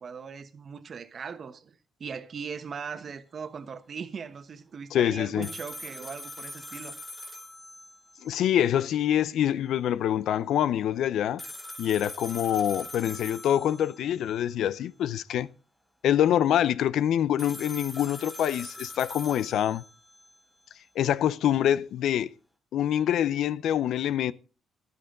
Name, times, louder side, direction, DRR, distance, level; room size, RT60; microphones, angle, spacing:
voice 1, 0.0-7.0, right 6 dB, 50° right, 1.2 m, -39 dB
voice 2, 4.9-5.5 8.2-11.4 11.8-15.5 16.0-19.8 21.0-22.3 22.7-24.3, left 10 dB, 75° left, 0.5 m, -25 dB
sound 1, 5.4-8.5 8.7-8.8 11.4-14.4 17.4-20.4, left 1 dB, 5° left, 3.3 m, -43 dB
14.0 x 11.0 x 3.8 m
cardioid pair, 90°, 0 cm